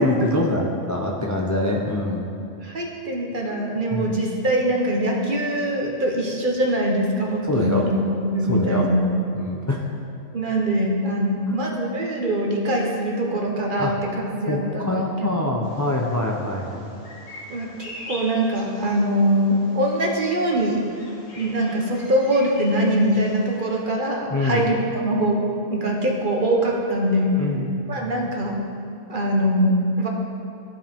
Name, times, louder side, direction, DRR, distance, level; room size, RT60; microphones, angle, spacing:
voice 1, 0.0-2.3 3.9-4.1 7.5-7.8 8.5-8.9 9.3-9.9 11.5-11.6 13.8-13.9 14.5-16.9 24.3-24.6 27.4-28.1, left 1 dB, 25° left, -2 dB, 0.4 m, -24 dB
voice 2, 2.6-8.0 8.3-9.1 10.3-14.9 15.2-15.3 17.5-20.8 21.4-25.4 25.7-27.4 27.9-28.6 29.1-30.1, right 1 dB, 45° right, -1 dB, 1.1 m, -23 dB
Bird vocalization bird call bird song, 15.6-23.8, left 1 dB, 75° left, 1.7 m, -43 dB
14.5 x 4.9 x 3.6 m, 2.5 s
omnidirectional pair, 1.4 m